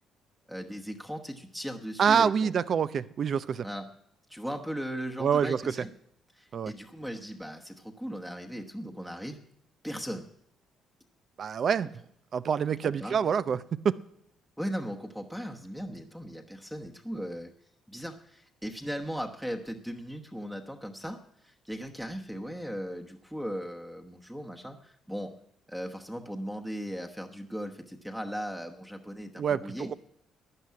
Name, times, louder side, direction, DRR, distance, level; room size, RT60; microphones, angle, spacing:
voice 1, 0.5-2.5 3.6-3.9 4.3-5.9 6.3-9.4 9.8-10.3 12.6-13.2 14.6-17.5 17.9-25.3 25.7-29.9, equal, 5° right, 4 dB, 1.1 m, -38 dB
voice 2, 2.0-3.7 5.2-5.6 6.5-6.7 11.4-11.9 12.3-14.0 29.4-29.9, right 7 dB, 45° right, 16 dB, 0.5 m, -26 dB
12.5 x 9.9 x 9.4 m, 0.72 s
cardioid pair, 120°, 0 cm